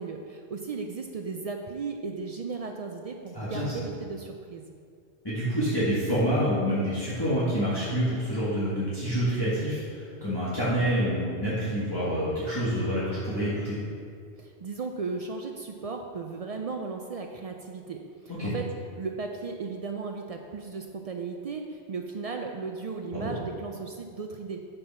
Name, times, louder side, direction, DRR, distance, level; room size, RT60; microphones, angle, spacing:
voice 1, 0.0-4.7 14.4-18.7 19.0-24.7, right 4 dB, 65° right, 3 dB, 0.3 m, -36 dB
voice 2, 3.3-3.7 5.2-13.8 18.4-18.5 23.1-23.3, equal, 20° left, -11 dB, 1.5 m, -27 dB
5.8 x 5.4 x 5.4 m, 2.3 s
omnidirectional pair, 1.1 m